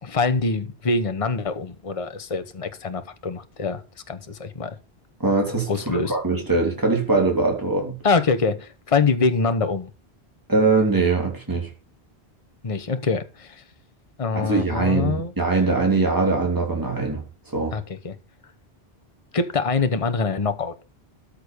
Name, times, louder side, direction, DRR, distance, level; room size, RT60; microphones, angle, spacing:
voice 1, 0.0-3.8 4.1-4.8 5.7-6.2 8.0-9.9 12.6-13.6 14.2-15.3 17.7-18.1 19.3-20.7, left 4 dB, 35° left, 1.0 m, -24 dB
voice 2, 5.2-8.0 10.5-11.7 14.3-17.2 17.5-17.7, right 3 dB, 20° right, 3.1 m, -22 dB
13.5 x 6.6 x 5.2 m
omnidirectional pair, 1.1 m